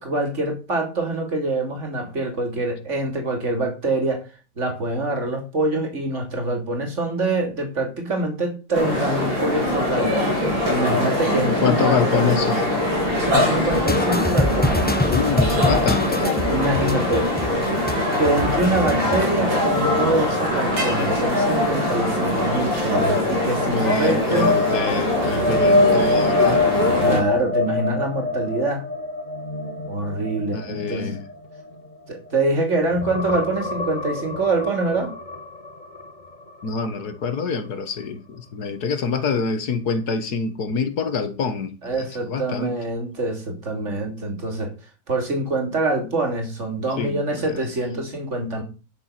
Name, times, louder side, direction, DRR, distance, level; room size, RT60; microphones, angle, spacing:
voice 1, 0.0-4.2 4.6-10.3 10.7-12.4 13.2-14.9 16.5-17.3 18.2-24.5 27.0-28.8 29.9-31.2 32.1-35.1 41.8-44.7 45.1-48.6, right 2 dB, 40° right, 3.4 m, -25 dB
sound 1, 8.7-27.2, left 1 dB, 90° right, 4.2 m, -22 dB
voice 2, 11.5-12.8 15.1-16.3 23.7-26.7 30.5-31.3 36.6-42.8 47.0-47.7, left 5 dB, 55° left, 1.9 m, -26 dB
sound 2, 13.7-19.4, left 1 dB, 10° left, 0.6 m, -25 dB
sound 3, 25.1-32.5 32.9-36.7 37.1-37.3 40.7-40.8, left 2 dB, 25° left, 1.5 m, -25 dB
11.0 x 7.1 x 5.9 m
omnidirectional pair, 2.0 m